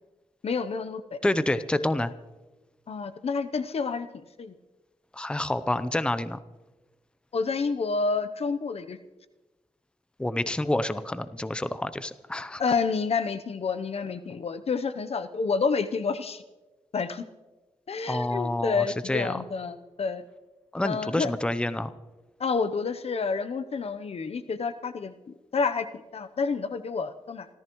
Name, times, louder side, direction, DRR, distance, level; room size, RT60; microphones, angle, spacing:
voice 1, 0.4-1.2 2.9-4.1 4.4-4.5 7.3-9.0 12.6-16.4 16.9-17.3 17.9-20.2 20.8-21.3 22.4-25.9 26.1-27.5, left 5 dB, 60° left, 10 dB, 0.8 m, -29 dB
voice 2, 1.2-2.1 5.1-6.4 10.2-12.6 18.1-19.4 20.7-21.9, left 1 dB, 10° left, 12 dB, 0.6 m, -28 dB
28.0 x 14.5 x 3.1 m, 1.2 s
wide cardioid pair, 90°, 12 cm